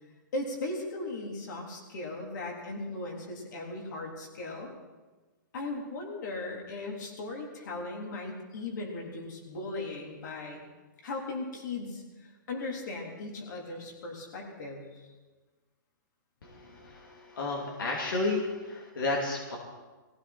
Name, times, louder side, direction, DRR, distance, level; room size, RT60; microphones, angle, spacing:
voice 1, 0.3-4.7 5.5-10.6 11.0-14.8, left 2 dB, 60° left, 0 dB, 3.8 m, -37 dB
voice 2, 16.4-19.6, left 2 dB, 85° left, -1 dB, 3.0 m, -32 dB
19.0 x 16.0 x 4.4 m, 1.3 s
hypercardioid pair, 155°, 11 cm